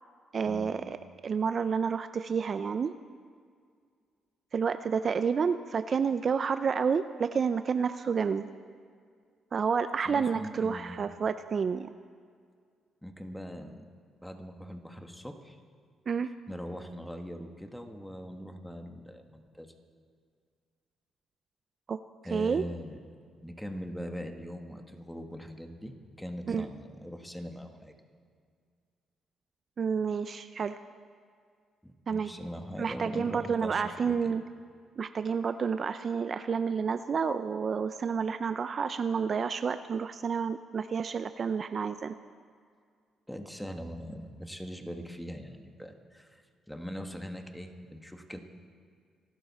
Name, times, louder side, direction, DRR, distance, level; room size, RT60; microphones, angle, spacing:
voice 1, 0.3-1.0 1.2-2.9 4.5-8.5 9.5-11.9 16.1-16.3 21.9-22.0 22.3-22.6 26.5-26.6 29.8-30.7 32.1-32.3 32.8-34.4 35.0-42.1, right 6 dB, 45° right, 11 dB, 0.4 m, -29 dB
voice 2, 10.0-11.0 13.0-13.8 14.2-15.6 16.5-19.7 22.2-23.0 23.4-28.0 31.8-34.3 43.3-48.4, equal, 5° left, 5 dB, 1.5 m, -41 dB
26.5 x 12.0 x 4.2 m, 2.1 s
cardioid pair, 90°, 0 cm